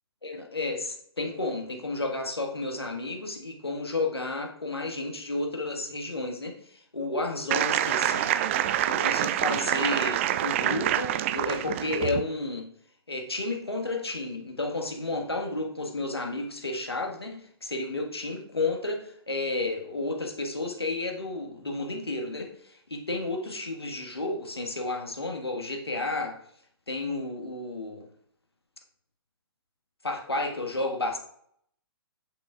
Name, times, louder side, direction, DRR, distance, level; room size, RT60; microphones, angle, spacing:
voice 1, 0.2-8.4 8.9-12.7 13.1-26.4 26.9-28.1 30.0-31.2, left 2 dB, 85° left, 3 dB, 1.5 m, -32 dB
sound 1, 7.5-12.2, right 11 dB, 30° right, 0.4 m, -26 dB
8.5 x 6.8 x 2.4 m, 0.65 s
figure-of-eight pair, 125°, 13 cm